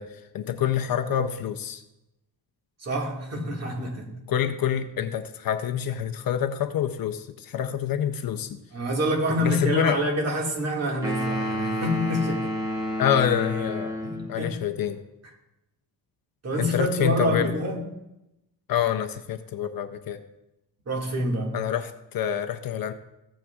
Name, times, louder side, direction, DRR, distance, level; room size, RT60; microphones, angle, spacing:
voice 1, 0.0-1.8 4.3-8.6 9.4-10.0 13.0-14.0 14.3-15.0 16.6-17.5 18.7-20.2 21.5-22.9, left 9 dB, 55° left, 0.6 m, -27 dB
voice 2, 2.8-4.1 8.7-12.5 14.0-14.6 16.4-17.8 20.9-21.6, equal, 35° right, 2.0 m, -27 dB
sound 1, 11.0-14.4, equal, 10° right, 2.0 m, -30 dB
15.0 x 8.6 x 2.4 m
cardioid pair, 160°, 44 cm